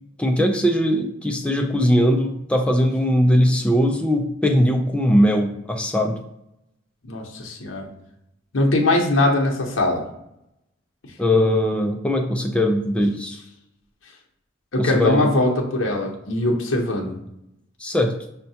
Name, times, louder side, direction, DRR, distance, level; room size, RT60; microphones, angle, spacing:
voice 1, 0.2-6.2 11.2-13.4 14.8-15.3 17.8-18.1, equal, 5° left, 3 dB, 0.3 m, -20 dB
voice 2, 7.0-7.9 8.5-10.0 14.7-17.1, left 2 dB, 70° left, 0 dB, 0.7 m, -21 dB
5.4 x 2.2 x 2.7 m, 0.82 s
head